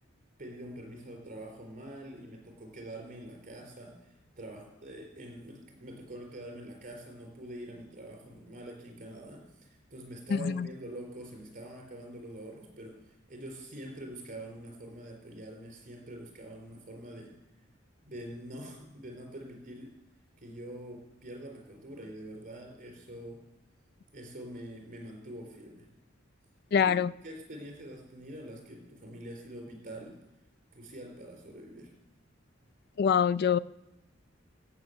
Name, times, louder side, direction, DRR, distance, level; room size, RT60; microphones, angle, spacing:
voice 1, 0.4-17.3 18.1-19.9 20.4-23.4 24.1-25.9 26.7-26.9 27.2-30.2 30.7-31.9, right 1 dB, 40° right, 1 dB, 4.1 m, -45 dB
voice 2, 10.3-10.7 26.7-27.1 33.0-33.6, left 7 dB, 55° left, 18 dB, 0.3 m, -25 dB
16.0 x 6.0 x 7.9 m, 0.92 s
head